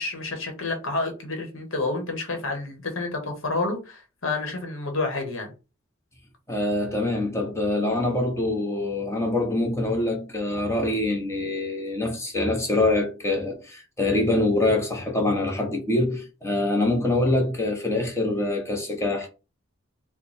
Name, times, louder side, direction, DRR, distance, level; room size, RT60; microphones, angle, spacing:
voice 1, 0.0-5.5, left 3 dB, 75° left, 1.0 m, -29 dB
voice 2, 6.5-19.3, left 2 dB, 15° left, 0.8 m, -25 dB
3.1 x 2.2 x 4.1 m
head